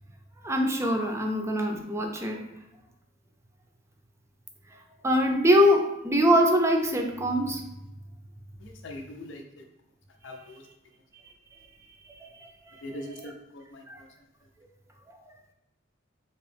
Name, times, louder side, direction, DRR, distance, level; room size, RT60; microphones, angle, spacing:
voice 1, 0.4-2.4 5.0-7.6 12.1-12.5 12.9-13.3 13.9-14.0, equal, 15° right, 3 dB, 0.5 m, -24 dB
voice 2, 8.6-9.4 10.2-10.6 12.8-13.8, left 1 dB, 70° left, 2 dB, 0.6 m, -41 dB
3.6 x 2.9 x 3.4 m, 0.90 s
head